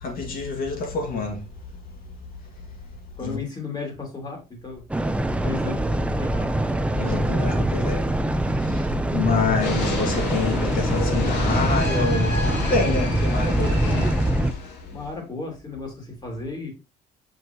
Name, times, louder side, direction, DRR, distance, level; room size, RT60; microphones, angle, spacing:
voice 1, 0.0-1.4 3.2-3.4 6.9-8.0 8.7-8.8 9.1-13.8, left 4 dB, 60° left, 2.1 m, -27 dB
voice 2, 3.2-4.8 5.4-6.6 13.8-14.1 14.9-16.7, left 3 dB, 25° left, 2.6 m, -34 dB
sound 1, 4.9-14.5, right 1 dB, 5° right, 0.6 m, -24 dB
sound 2, 9.6-15.1, left 3 dB, 90° left, 2.3 m, -30 dB
6.0 x 5.5 x 2.9 m
cardioid pair, 110°, 17 cm